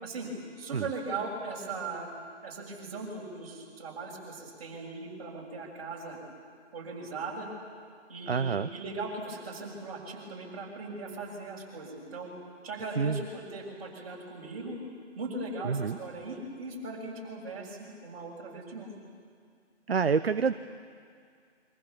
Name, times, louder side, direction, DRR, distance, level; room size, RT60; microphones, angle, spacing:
voice 1, 0.0-2.1 2.4-6.2 6.7-7.5 8.1-12.3 12.6-14.8 15.2-18.9, right 3 dB, 30° right, -3 dB, 6.9 m, -39 dB
voice 2, 8.3-8.7 13.0-13.2 15.6-16.0 19.9-20.5, right 5 dB, 55° right, 11 dB, 0.8 m, -27 dB
29.0 x 24.5 x 7.3 m, 2.2 s
figure-of-eight pair, 145°, 36 cm